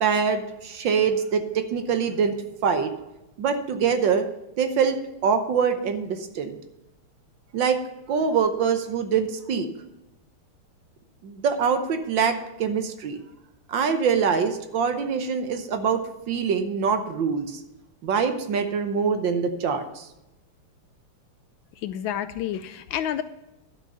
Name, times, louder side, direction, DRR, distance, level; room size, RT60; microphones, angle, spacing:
voice 1, 0.0-1.4 1.7-2.4 2.6-2.9 3.4-4.2 4.6-5.0 5.2-6.6 7.5-7.8 8.1-9.7 11.2-13.2 13.7-16.0 16.3-17.6 18.0-20.1, right 6 dB, 65° right, 8 dB, 1.6 m, -24 dB
voice 2, 21.8-23.2, left 10 dB, 75° left, 12 dB, 1.2 m, -29 dB
11.5 x 6.0 x 6.6 m, 0.93 s
omnidirectional pair, 2.4 m